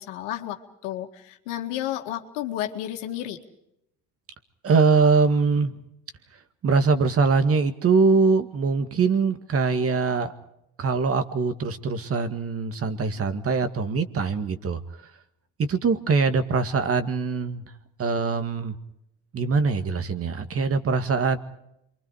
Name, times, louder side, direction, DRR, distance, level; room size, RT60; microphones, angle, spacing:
voice 1, 0.0-3.4, left 12 dB, 80° left, 4 dB, 2.1 m, -32 dB
voice 2, 4.6-5.7 6.6-10.3 10.8-14.8 15.7-17.6 18.0-18.8 19.3-21.4, right 4 dB, 40° right, 9 dB, 2.0 m, -22 dB
28.0 x 24.0 x 4.9 m, 0.80 s
supercardioid pair, 80°, 35 cm